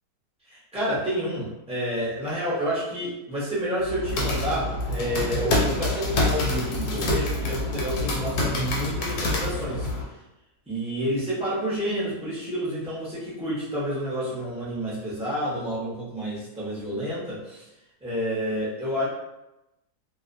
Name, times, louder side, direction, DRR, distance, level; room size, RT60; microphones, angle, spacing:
voice 1, 0.5-9.9 10.7-17.6 18.0-19.1, equal, 10° right, -9 dB, 0.4 m, -29 dB
sound 1, 3.8-10.0, left 2 dB, 80° left, 1.1 m, -27 dB
2.5 x 2.1 x 2.5 m, 0.94 s
omnidirectional pair, 1.6 m